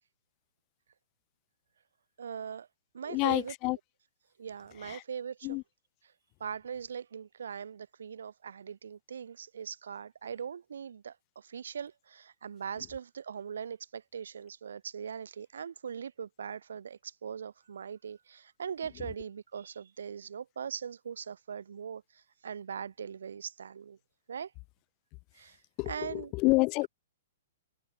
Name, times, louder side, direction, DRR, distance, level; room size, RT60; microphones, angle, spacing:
voice 1, 2.2-2.7 2.9-3.5 4.4-5.6 6.4-24.0 24.3-24.5 25.3-25.6 25.8-26.3, right 7 dB, 85° right, 2.8 m, -41 dB
voice 2, 3.1-3.8 4.9-5.0 5.4-5.6 25.8-26.9, left 26 dB, 30° left, 2.2 m, -28 dB
hypercardioid pair, 150°, 0 cm